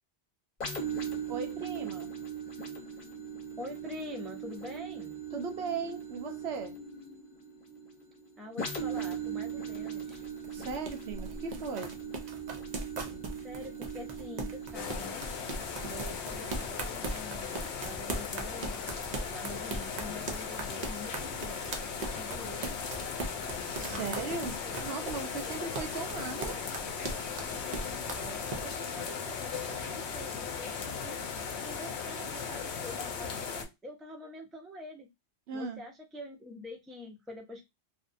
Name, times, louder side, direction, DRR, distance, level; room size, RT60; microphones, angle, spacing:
sound 1, 0.6-18.1 18.7-18.8, right 6 dB, 45° left, 0.9 m, -40 dB
voice 1, 1.3-2.1 5.3-6.7 10.5-11.9 23.8-24.5 24.8-26.6 35.5-35.8, right 5 dB, 75° right, 0.9 m, -37 dB
voice 2, 3.6-5.2 8.4-10.2 13.3-15.3 15.8-18.9 19.3-22.8 23.9-25.7 26.0-26.6 28.1-31.2 31.6-35.1 35.5-37.7, left 1 dB, ahead, 0.4 m, -46 dB
sound 2, 9.6-28.6, right 2 dB, 50° right, 0.6 m, -39 dB
sound 3, 14.7-33.7, left 6 dB, 85° left, 0.9 m, -37 dB
2.6 x 2.1 x 2.5 m
omnidirectional pair, 1.1 m